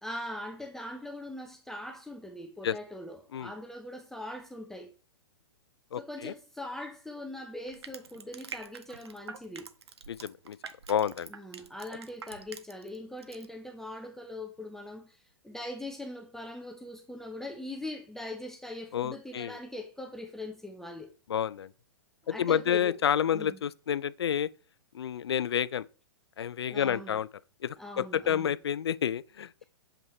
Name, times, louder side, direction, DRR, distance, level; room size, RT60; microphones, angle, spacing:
voice 1, 0.0-4.9 5.9-9.7 11.3-21.1 22.2-23.0 23.3-23.6 26.7-27.2 27.8-28.5, left 1 dB, 5° left, 0.7 m, -41 dB
voice 2, 5.9-6.3 10.1-10.6 10.9-11.3 18.9-19.6 21.3-21.7 22.3-24.5 24.9-25.9 26.4-27.3 27.6-29.5, left 9 dB, 75° left, 0.4 m, -29 dB
Crushing, 7.7-13.0 13.2-13.4, right 6 dB, 75° right, 0.8 m, -45 dB
7.2 x 5.3 x 3.2 m
figure-of-eight pair, 115°, 14 cm